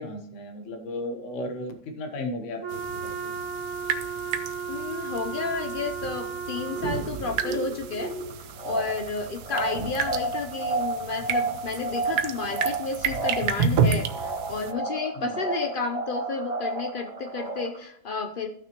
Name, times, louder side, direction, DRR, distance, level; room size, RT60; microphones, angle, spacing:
voice 1, 0.0-3.3 15.1-15.3, left 1 dB, 55° left, 5 dB, 1.3 m, -35 dB
Wind instrument woodwind instrument, 2.6-7.3, right 5 dB, 15° right, 1.7 m, -34 dB
sound 1, 2.7-14.7, right 6 dB, 80° right, 1.2 m, -31 dB
voice 2, 4.7-8.1 8.6-18.5, left 4 dB, 70° left, 5 dB, 0.5 m, -31 dB
sound 2, 6.5-17.8, right 2 dB, 35° right, 2.2 m, -32 dB
14.5 x 6.0 x 2.9 m, 0.68 s
omnidirectional pair, 1.7 m